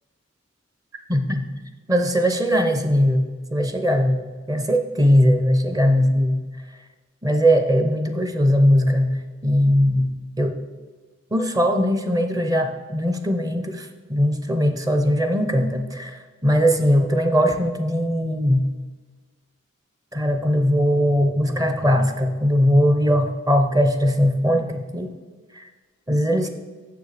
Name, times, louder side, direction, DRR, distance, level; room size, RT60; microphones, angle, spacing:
voice 1, 1.1-1.5 1.9-3.2 3.5-6.4 7.2-10.6 11.3-18.7 20.1-25.1 25.6-25.7 26.1-26.5, equal, 20° right, 8 dB, 0.6 m, -20 dB
7.1 x 6.9 x 6.5 m, 1.4 s
head